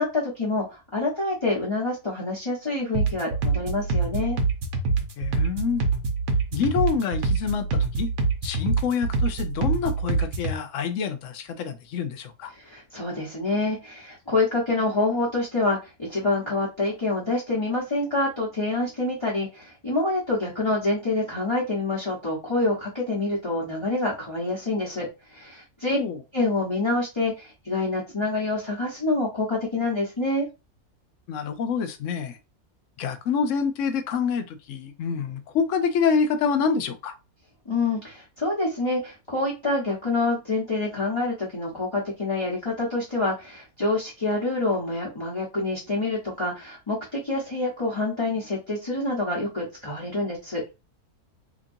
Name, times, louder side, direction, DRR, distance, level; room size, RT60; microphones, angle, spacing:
voice 1, 0.0-4.4 12.6-26.0 26.3-30.5 37.6-50.7, left 2 dB, 20° left, 1.0 m, -27 dB
sound 1, 2.9-10.6, right 3 dB, 60° right, 1.1 m, -25 dB
voice 2, 5.2-5.8 6.5-8.1 8.4-12.5 25.9-26.2 31.3-32.4 33.0-37.2, left 6 dB, 65° left, 0.9 m, -27 dB
4.0 x 2.9 x 2.6 m
omnidirectional pair, 1.6 m